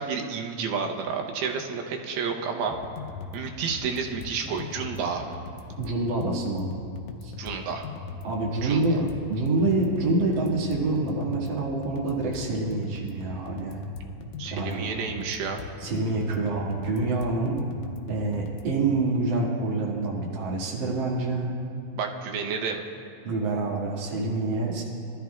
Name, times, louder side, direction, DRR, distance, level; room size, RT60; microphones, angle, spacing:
voice 1, 0.0-2.8 3.3-5.4 7.4-7.9 8.6-9.0 14.4-15.6 22.0-22.8, right 5 dB, 90° right, 2 dB, 2.8 m, -30 dB
sound 1, 2.7-18.7, left 4 dB, 75° left, 1.8 m, -40 dB
voice 2, 5.8-6.7 7.2-7.3 8.2-9.0 9.3-13.8 14.5-14.9 15.8-17.6 18.1-21.5 23.2-24.8, right 2 dB, 40° right, -4 dB, 2.0 m, -26 dB
23.0 x 13.0 x 2.3 m, 2.6 s
omnidirectional pair, 4.3 m